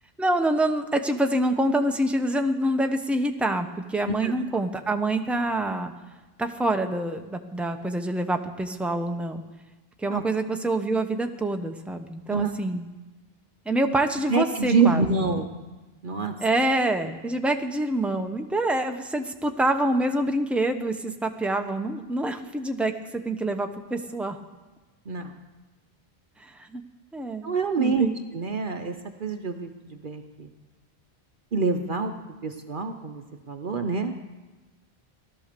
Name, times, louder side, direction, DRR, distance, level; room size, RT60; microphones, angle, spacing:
voice 1, 0.2-5.9 6.4-9.4 10.0-12.9 13.7-15.1 16.4-24.4 26.4-26.8 27.1-27.4 27.8-28.3, right 1 dB, ahead, 5 dB, 0.8 m, -26 dB
voice 2, 14.3-15.5 16.0-16.3 25.1-25.3 27.4-28.1 28.3-30.5 31.5-32.1 32.4-34.1, right 4 dB, 55° right, 5 dB, 1.0 m, -26 dB
17.0 x 12.5 x 6.7 m, 1.2 s
omnidirectional pair, 1.1 m